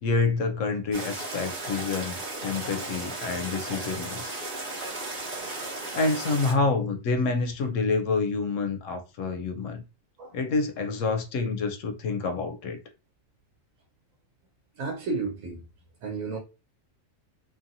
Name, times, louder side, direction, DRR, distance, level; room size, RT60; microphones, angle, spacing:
voice 1, 0.0-4.4 5.9-9.8 10.3-12.8, left 4 dB, 75° left, 0.9 m, -28 dB
sound 1, 0.9-6.5, right 2 dB, 45° right, 1.0 m, -35 dB
voice 2, 14.8-15.6 16.0-16.4, right 4 dB, 85° right, 1.1 m, -32 dB
2.6 x 2.6 x 2.6 m
omnidirectional pair, 1.4 m